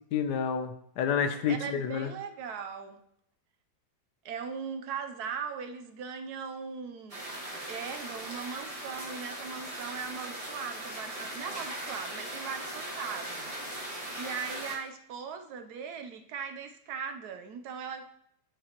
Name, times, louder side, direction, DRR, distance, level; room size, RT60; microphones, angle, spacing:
voice 1, 0.1-2.1, left 7 dB, 85° left, 9 dB, 1.3 m, -29 dB
voice 2, 1.5-3.0 4.2-7.2 7.7-13.6 13.8-18.1, right 6 dB, 75° right, 7 dB, 1.2 m, -39 dB
sound 1, 7.1-14.7, right 1 dB, 20° right, 1.5 m, -39 dB
11.5 x 5.1 x 3.0 m, 0.72 s
omnidirectional pair, 1.7 m